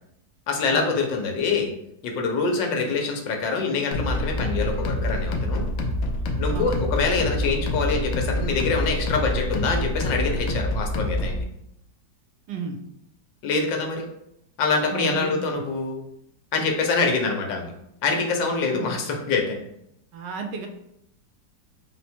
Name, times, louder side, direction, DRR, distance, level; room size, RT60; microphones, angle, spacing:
voice 1, 0.5-1.7 2.0-5.6 6.4-11.4 13.4-14.0 14.6-16.0 16.5-17.7 18.0-19.6, left 4 dB, 85° left, 2 dB, 1.4 m, -25 dB
sound 1, 3.9-11.4, left 1 dB, 65° left, 0.9 m, -26 dB
voice 2, 12.5-12.8 14.9-15.6 16.9-17.1 18.7-19.0 20.1-20.7, right 5 dB, 75° right, 4 dB, 1.2 m, -33 dB
4.1 x 2.2 x 4.3 m, 0.80 s
omnidirectional pair, 1.9 m